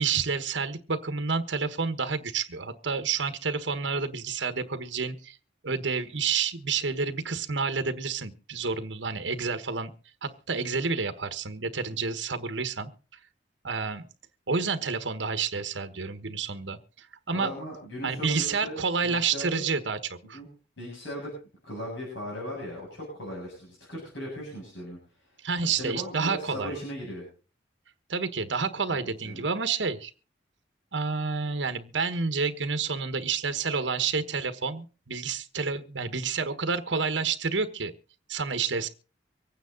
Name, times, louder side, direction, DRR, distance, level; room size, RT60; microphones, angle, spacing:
voice 1, 0.0-5.4 5.6-9.9 10.2-12.9 13.6-14.0 14.5-17.5 18.0-20.4 25.4-26.8 28.1-30.1 30.9-37.9 38.3-38.9, right 5 dB, 70° right, 9 dB, 1.3 m, -29 dB
voice 2, 17.3-19.6 20.3-20.5 20.8-21.3 21.7-25.0 25.8-27.3 28.9-29.0 29.2-29.5, equal, 80° left, -3 dB, 7.5 m, -38 dB
24.5 x 9.3 x 3.9 m, 0.37 s
head